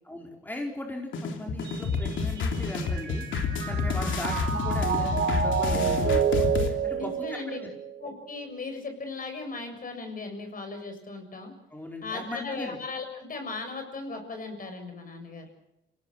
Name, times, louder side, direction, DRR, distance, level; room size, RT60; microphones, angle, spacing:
voice 1, 0.0-3.3 3.7-7.7 11.7-12.8, left 1 dB, 10° left, 1 dB, 4.6 m, -38 dB
sound 1, 1.1-6.7, left 5 dB, 75° left, 3.4 m, -29 dB
Mallet percussion, 1.7-8.1, right 7 dB, 65° right, 4.3 m, -29 dB
voice 2, 6.9-7.6 8.0-11.5 12.0-15.5, left 3 dB, 45° left, 6 dB, 7.1 m, -37 dB
27.0 x 18.0 x 7.8 m, 0.85 s
cardioid pair, 90°, 20 cm